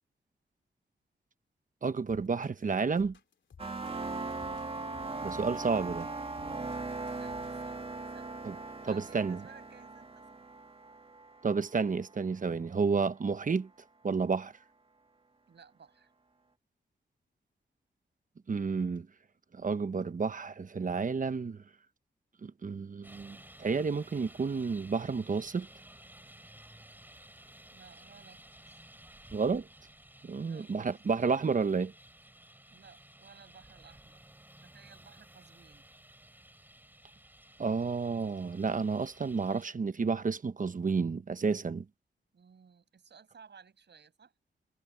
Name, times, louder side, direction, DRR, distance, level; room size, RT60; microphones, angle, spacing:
voice 1, 1.8-3.2 5.2-6.1 8.4-8.5 8.9-9.4 11.4-13.7 14.0-14.5 18.5-19.1 19.5-21.6 22.4-25.7 29.3-29.7 30.2-31.9 37.6-41.8, right 5 dB, 45° right, 1.1 m, -31 dB
sound 1, 2.1-7.7, left 6 dB, 80° left, 3.4 m, -57 dB
sound 2, 3.6-12.2, right 3 dB, 30° right, 1.6 m, -39 dB
voice 2, 7.1-7.8 8.1-8.3 8.9-10.5 15.5-16.1 27.7-28.8 30.4-30.8 32.7-34.2 34.6-35.9 42.3-44.3, right 6 dB, 70° right, 6.6 m, -57 dB
Traffic noise roadway noise, 23.0-39.6, right 1 dB, 10° right, 5.4 m, -55 dB
wide cardioid pair, 95°, 19 cm